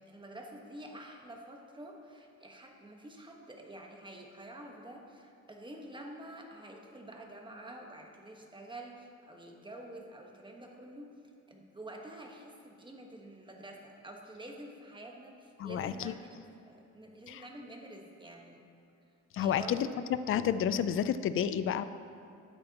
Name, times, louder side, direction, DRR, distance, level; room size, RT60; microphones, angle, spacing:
voice 1, 0.0-11.1 11.5-18.6 19.4-19.8, right 1 dB, 15° right, 1 dB, 1.3 m, -48 dB
voice 2, 15.6-16.1 17.3-17.4 19.3-19.9 20.3-21.8, left 9 dB, 45° left, 13 dB, 0.4 m, -30 dB
12.5 x 8.7 x 2.9 m, 2.6 s
cardioid pair, 90°, 30 cm